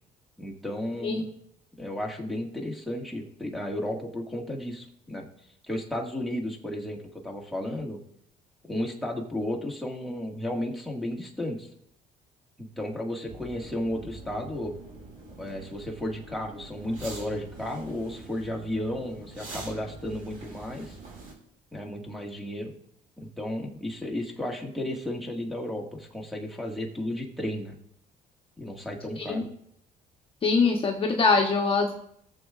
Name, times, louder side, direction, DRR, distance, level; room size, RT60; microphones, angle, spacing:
voice 1, 0.4-1.3 1.8-5.3 5.6-8.0 8.7-11.7 12.6-14.7 15.4-21.0 21.7-22.7 23.2-27.8 28.6-29.5, left 1 dB, ahead, -1 dB, 1.8 m, -33 dB
sound 1, 13.3-21.3, right 2 dB, 55° right, 3.3 m, -44 dB
voice 2, 30.4-31.9, left 4 dB, 30° left, 1 dB, 1.1 m, -23 dB
19.0 x 7.2 x 2.5 m, 0.72 s
cardioid pair, 110°, 17 cm